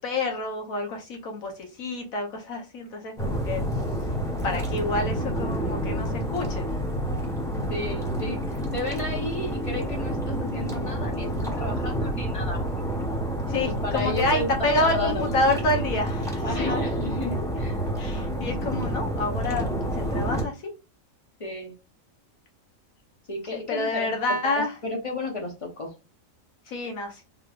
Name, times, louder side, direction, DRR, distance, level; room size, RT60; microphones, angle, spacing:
voice 1, 0.0-3.6 4.4-6.7 13.5-16.7 18.0-20.7 23.5-24.8 26.7-27.2, left 2 dB, 80° left, 1.4 m, -28 dB
sound 1, 3.2-20.4, right 1 dB, 5° left, 1.2 m, -29 dB
voice 2, 7.7-8.4 8.7-12.6 13.8-15.3 16.4-17.8 21.4-21.7 23.3-24.2 24.6-25.9, left 2 dB, 30° left, 0.9 m, -32 dB
3.6 x 3.1 x 2.4 m
omnidirectional pair, 1.4 m